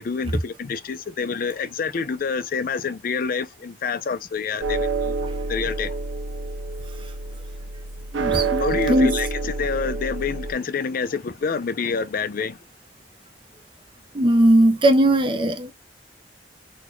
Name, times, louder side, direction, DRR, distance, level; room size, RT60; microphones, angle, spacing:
voice 1, 0.0-5.1 5.5-6.0 8.6-12.6, left 5 dB, 50° left, 0.4 m, -27 dB
sound 1, 4.6-10.5, right 4 dB, 85° right, 0.6 m, -27 dB
voice 2, 8.1-9.2 14.1-15.7, right 1 dB, 25° right, 0.5 m, -18 dB
4.1 x 2.2 x 3.0 m
head